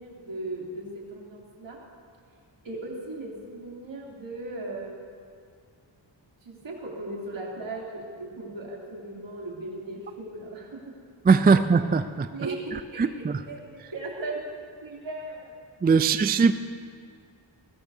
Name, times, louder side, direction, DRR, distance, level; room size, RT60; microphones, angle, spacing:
voice 1, 0.0-1.8 2.6-5.0 6.4-10.8 12.3-13.0 13.5-14.4 14.8-15.5, right 2 dB, 70° right, -3 dB, 3.1 m, -37 dB
voice 2, 11.2-12.3 12.7-13.4 15.8-16.5, right 5 dB, 20° right, 11 dB, 0.3 m, -21 dB
20.0 x 16.5 x 2.7 m, 2.3 s
wide cardioid pair, 85°, 47 cm